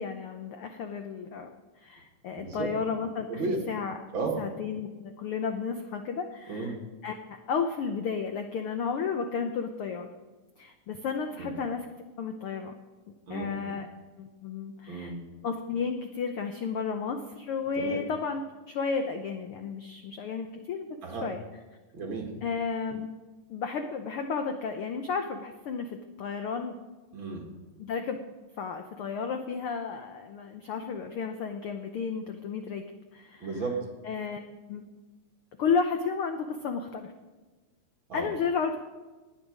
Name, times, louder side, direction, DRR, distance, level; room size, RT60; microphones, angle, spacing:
voice 1, 0.0-1.5 1.8-3.3 3.7-4.0 4.4-6.7 7.0-7.1 7.5-10.1 10.6-11.8 12.2-12.7 13.3-13.9 14.2-15.1 15.4-18.4 18.7-20.9 21.2-21.4 22.4-23.1 23.5-26.7 27.8-28.2 28.6-32.8 33.1-33.5 34.0-34.4 34.7-34.8 35.6-37.1 38.1-38.8, left 5 dB, 75° left, 6 dB, 1.2 m, -32 dB
voice 2, 3.3-3.7 4.1-4.4 6.5-6.8 11.4-11.5 13.3-13.7 14.9-15.3 17.8-18.0 21.0-21.3 21.9-22.4 27.1-27.5 33.4-33.9 38.1-38.3, right 3 dB, 45° right, 1 dB, 2.4 m, -33 dB
19.0 x 8.7 x 5.1 m, 1.2 s
omnidirectional pair, 3.5 m